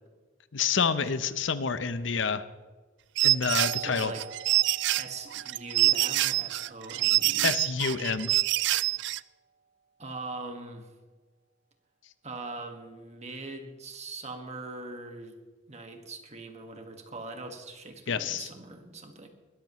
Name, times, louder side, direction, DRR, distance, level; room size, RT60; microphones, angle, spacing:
voice 1, 0.5-2.4 3.2-4.1 7.4-8.3 18.1-18.5, left 6 dB, 75° left, 13 dB, 0.7 m, -28 dB
sound 1, 3.2-9.2, right 16 dB, 65° right, 0.3 m, -26 dB
Doorbell, 3.6-9.0, right 5 dB, 80° right, 1.7 m, -48 dB
voice 2, 3.8-4.3 5.0-7.5 10.0-10.9 12.2-15.4 15.7-19.3, right 3 dB, 35° right, 5 dB, 1.6 m, -41 dB
21.0 x 13.5 x 3.1 m, 1.3 s
head